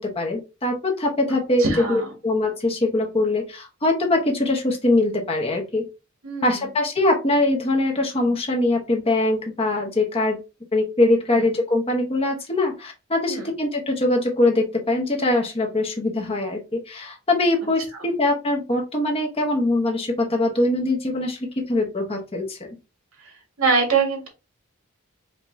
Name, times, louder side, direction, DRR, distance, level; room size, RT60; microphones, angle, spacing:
voice 1, 0.0-5.8 6.4-10.4 10.7-22.7, left 2 dB, 25° left, 1 dB, 1.0 m, -22 dB
voice 2, 1.6-2.1 6.2-6.6 11.3-11.4 13.3-13.5 23.2-23.3 23.6-24.3, right 4 dB, 90° right, 1 dB, 1.8 m, -23 dB
5.2 x 2.9 x 2.7 m, 0.29 s
head